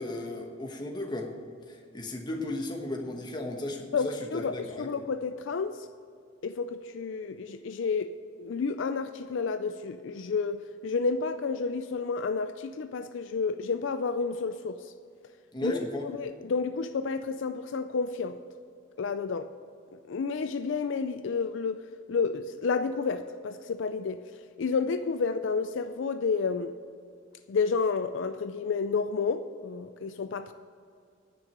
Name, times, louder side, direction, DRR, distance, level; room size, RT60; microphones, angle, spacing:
voice 1, 0.0-1.3 1.7-4.9 15.5-16.1, left 1 dB, 20° left, 1.2 m, -35 dB
voice 2, 3.9-5.9 6.4-14.9 15.6-15.8 16.2-18.4 19.0-19.5 20.1-21.8 22.1-24.2 24.6-26.7 27.5-30.5, left 5 dB, 70° left, 0.4 m, -30 dB
10.0 x 6.1 x 8.7 m
head